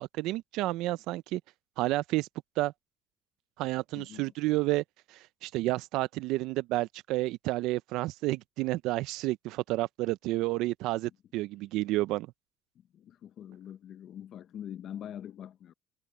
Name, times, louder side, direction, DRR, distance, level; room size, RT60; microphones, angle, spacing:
voice 1, 0.0-1.4 1.8-2.3 2.6-2.7 3.6-4.8 5.1-12.3, right 18 dB, 85° right, 0.3 m, -30 dB
voice 2, 3.9-4.3 12.9-15.7, left 10 dB, 60° left, 0.7 m, -44 dB
cardioid pair, 95°, 0 cm